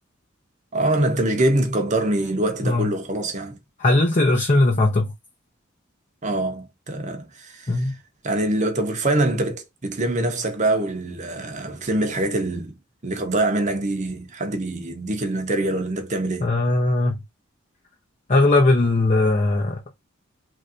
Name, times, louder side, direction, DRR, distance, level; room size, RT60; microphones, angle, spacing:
voice 1, 0.7-3.6 6.2-7.9 8.2-12.8 13.0-16.5, right 1 dB, 35° right, 0.8 m, -24 dB
voice 2, 2.6-2.9 3.8-5.1 7.7-8.0 16.4-17.2 18.3-19.8, left 2 dB, 35° left, 0.7 m, -19 dB
3.2 x 2.7 x 2.5 m
head